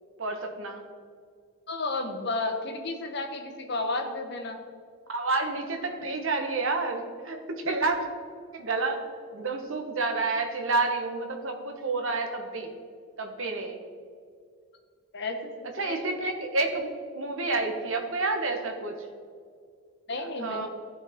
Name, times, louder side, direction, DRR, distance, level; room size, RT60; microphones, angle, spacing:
voice 1, 0.2-0.8 5.1-7.4 7.6-8.0 8.5-9.0 9.3-12.7 13.2-13.8 15.8-19.0 20.1-20.7, right 3 dB, 70° right, 4 dB, 1.3 m, -29 dB
voice 2, 1.7-4.6 15.1-15.9 20.1-20.7, left 2 dB, 50° left, 4 dB, 1.1 m, -32 dB
14.5 x 5.6 x 3.7 m, 2.2 s
head